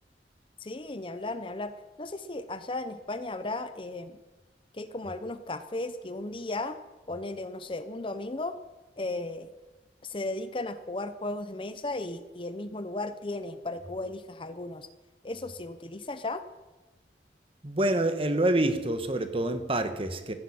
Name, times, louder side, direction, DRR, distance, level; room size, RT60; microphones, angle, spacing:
voice 1, 0.6-4.2 4.7-6.8 7.1-8.6 9.0-9.5 10.0-14.9 15.2-16.4, left 2 dB, 30° left, 11 dB, 0.8 m, -35 dB
voice 2, 17.6-20.3, right 1 dB, 30° right, 9 dB, 1.4 m, -27 dB
14.5 x 10.5 x 8.8 m, 1.1 s
head